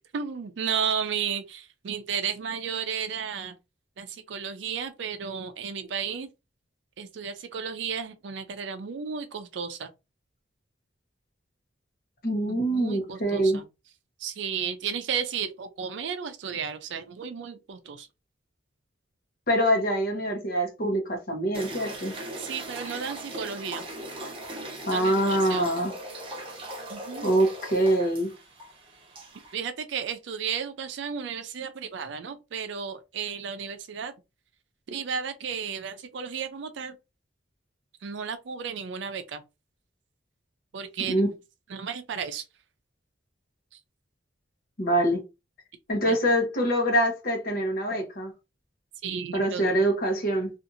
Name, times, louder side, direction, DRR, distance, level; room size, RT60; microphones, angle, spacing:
voice 1, 0.1-3.6 4.0-6.3 7.0-9.9 12.5-13.7 14.2-18.1 22.4-23.8 24.9-25.7 26.9-27.3 29.5-34.1 34.9-36.9 38.0-39.4 40.7-41.2 41.7-42.4 43.7-43.8 46.0-46.2 49.0-49.7, right 7 dB, 70° right, 0.4 m, -33 dB
voice 2, 12.2-13.6 19.5-22.1 24.9-25.9 27.2-28.3 41.1-41.3 44.8-45.2 45.9-48.3 49.3-50.5, right 1 dB, 50° left, 0.9 m, -24 dB
sound 1, 21.5-29.5, right 1 dB, 30° right, 0.7 m, -39 dB
2.7 x 2.4 x 2.5 m
head